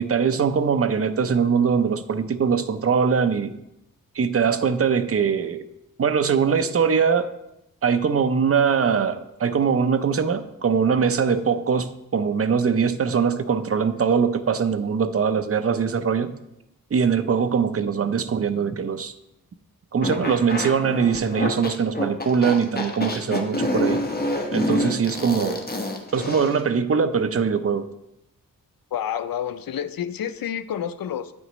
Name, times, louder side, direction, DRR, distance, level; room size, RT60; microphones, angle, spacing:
voice 1, 0.0-3.6 4.1-5.6 6.0-7.3 7.8-16.3 16.9-19.1 19.9-24.0 24.5-25.6 26.1-27.9, right 6 dB, 40° right, 11 dB, 0.6 m, -22 dB
sound 1, 20.0-26.6, left 1 dB, 25° left, 1.2 m, -27 dB
voice 2, 28.9-31.3, left 9 dB, 70° left, 12 dB, 0.6 m, -29 dB
9.4 x 9.0 x 3.0 m, 0.85 s
wide cardioid pair, 125°, 36 cm